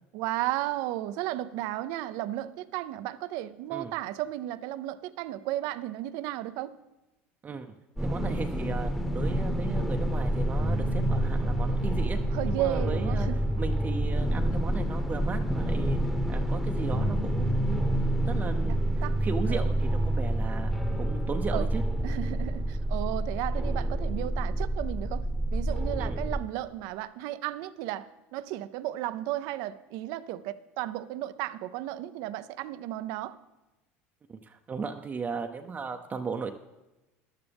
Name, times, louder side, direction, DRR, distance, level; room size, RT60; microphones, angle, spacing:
voice 1, 0.1-6.7 12.3-13.4 19.0-19.1 19.5-19.7 21.5-21.7 22.0-25.2 25.5-28.0 28.3-33.3, right 14 dB, 65° right, 14 dB, 0.6 m, -34 dB
sound 1, 8.0-26.4, right 1 dB, ahead, 1.1 m, -28 dB
voice 2, 8.0-12.2 12.4-13.3 13.6-16.0 16.3-21.8 26.0-26.2 34.3-36.5, right 5 dB, 25° right, 4 dB, 0.7 m, -36 dB
14.0 x 11.5 x 3.5 m, 1.0 s
supercardioid pair, 105°, 6 cm